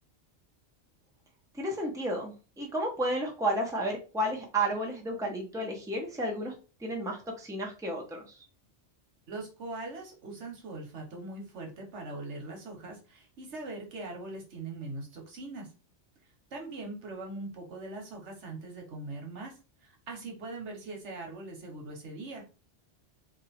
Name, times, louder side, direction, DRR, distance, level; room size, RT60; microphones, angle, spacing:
voice 1, 1.5-6.5 6.8-8.4, right 1 dB, 5° right, 0 dB, 0.7 m, -32 dB
voice 2, 9.3-15.7 16.5-22.4, right 2 dB, 80° right, 2 dB, 1.3 m, -41 dB
2.8 x 2.5 x 4.1 m, 0.34 s
omnidirectional pair, 1.2 m